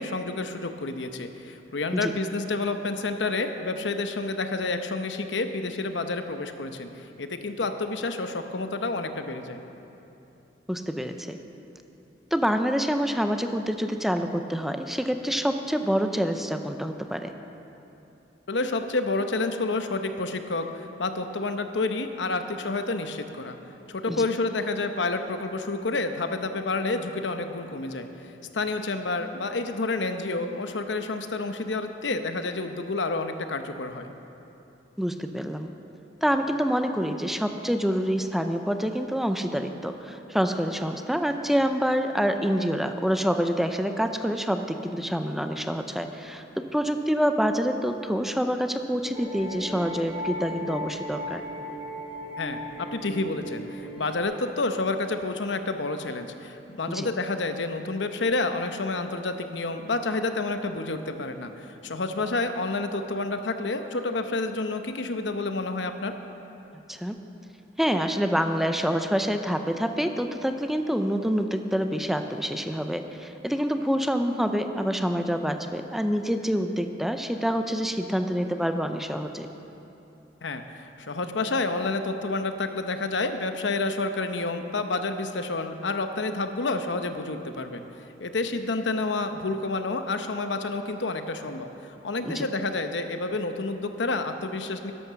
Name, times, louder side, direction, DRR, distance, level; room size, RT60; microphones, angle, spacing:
voice 1, 0.0-9.6 18.5-23.6 23.9-28.1 28.5-34.1 52.4-66.2 80.4-87.9 88.2-94.9, left 3 dB, 80° left, 8 dB, 0.9 m, -29 dB
voice 2, 10.7-11.4 12.3-17.3 24.1-24.3 35.0-35.7 36.2-51.4 56.9-57.1 66.9-67.2 67.8-79.5 92.2-92.5, equal, ahead, 7 dB, 0.5 m, -27 dB
sound 1, 49.1-54.2, left 1 dB, 35° right, 2.3 m, -37 dB
12.0 x 11.0 x 6.8 m, 2.9 s
head